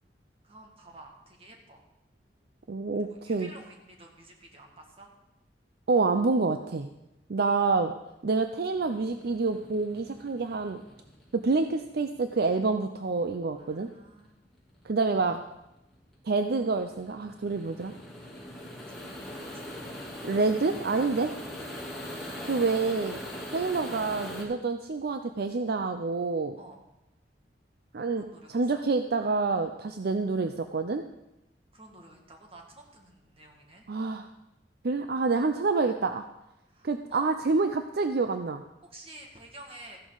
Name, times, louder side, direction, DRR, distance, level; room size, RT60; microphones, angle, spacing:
voice 1, 0.4-1.8 3.0-5.1 13.5-14.3 18.7-19.8 23.4-23.5 26.6-26.8 28.1-28.9 31.7-33.8 36.7-37.3 38.8-40.0, right 2 dB, 35° right, 1 dB, 2.1 m, -51 dB
voice 2, 2.7-3.5 5.9-6.9 7.3-7.9 8.2-10.8 11.3-13.9 14.8-15.4 16.3-17.9 20.2-21.3 22.4-23.2 23.5-26.6 27.9-28.3 28.5-31.0 33.9-34.3 34.8-36.3 36.8-38.6, right 3 dB, 60° right, 8 dB, 0.6 m, -27 dB
sound 1, 8.7-24.4, left 1 dB, ahead, 3.1 m, -42 dB
14.5 x 11.0 x 4.0 m, 0.90 s
head